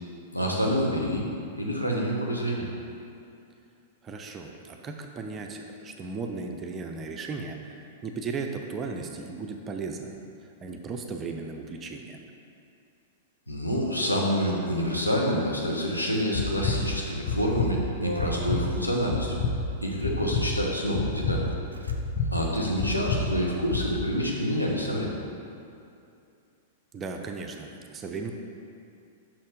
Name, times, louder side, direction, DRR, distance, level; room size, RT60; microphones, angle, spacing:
voice 1, 0.3-1.2 1.6-2.7 13.5-19.4 19.8-21.5 22.3-25.2, equal, 85° left, -2 dB, 0.9 m, -27 dB
voice 2, 4.0-12.3 22.5-22.6 26.9-28.3, right 4 dB, 20° right, 3 dB, 0.5 m, -36 dB
sound 1, 16.3-16.8 17.3-17.7 18.2-18.6 19.1-19.5 20.0-20.4 20.9-21.4 21.9-22.3 22.8-23.2 23.7-23.9, left 6 dB, 40° left, 0.8 m, -28 dB
sound 2, 18.0-19.1 20.1-20.6 21.1-21.2 21.5-22.0 22.2-22.4 22.9-23.6, right 1 dB, 80° right, 0.4 m, -40 dB
5.9 x 4.3 x 5.1 m, 2.6 s
figure-of-eight pair, 100°, 0 cm